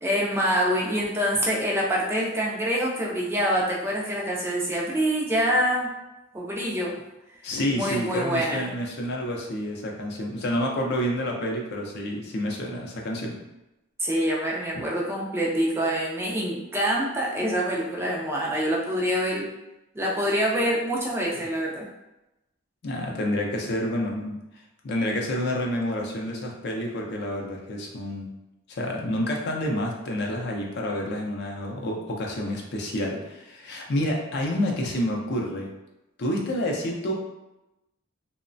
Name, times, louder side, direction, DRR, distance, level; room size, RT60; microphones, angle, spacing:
voice 1, 0.0-5.9 6.3-7.0 7.7-8.6 14.0-19.5 20.0-21.9, equal, 10° right, -4 dB, 0.3 m, -25 dB
voice 2, 7.4-13.4 22.8-24.4 24.8-28.3 28.7-35.7 36.2-37.1, left 1 dB, 50° left, 0 dB, 0.4 m, -29 dB
3.0 x 2.1 x 2.5 m, 0.95 s
head